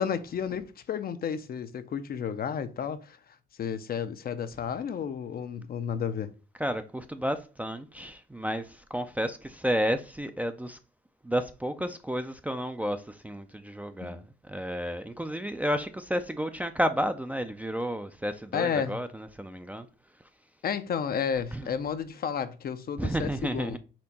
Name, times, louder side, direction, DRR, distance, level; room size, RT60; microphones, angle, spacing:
voice 1, 0.0-3.2 3.6-6.3 14.0-14.2 18.5-19.0 20.6-23.8, left 7 dB, 50° left, 0.5 m, -32 dB
voice 2, 6.6-10.8 11.2-19.9 21.5-21.7 23.0-23.8, equal, 5° right, 0.4 m, -31 dB
4.4 x 2.8 x 4.0 m
cardioid pair, 90°, 20 cm